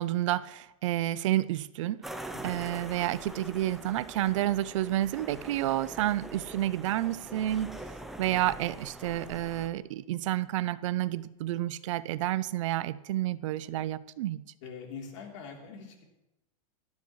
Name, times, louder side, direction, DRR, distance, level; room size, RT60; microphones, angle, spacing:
voice 1, 0.0-2.1 2.4-7.8 8.2-14.4, right 14 dB, 60° right, 0.5 m, -30 dB
sound 1, 2.0-9.7, right 1 dB, ahead, 0.5 m, -44 dB
voice 2, 2.3-2.6 14.6-16.0, left 6 dB, 55° left, 3.3 m, -44 dB
18.0 x 13.0 x 3.1 m
supercardioid pair, 170°, 18 cm